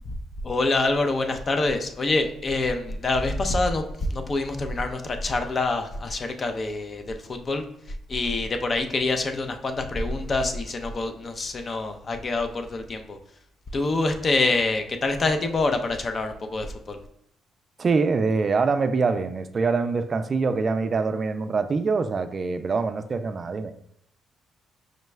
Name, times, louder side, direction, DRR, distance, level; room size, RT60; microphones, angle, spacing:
voice 1, 0.4-13.2 13.7-17.0, left 2 dB, 40° left, 6 dB, 0.5 m, -26 dB
voice 2, 17.8-23.7, right 4 dB, 40° right, 9 dB, 0.3 m, -24 dB
5.0 x 2.2 x 3.2 m, 0.70 s
cardioid pair, 90°, 0 cm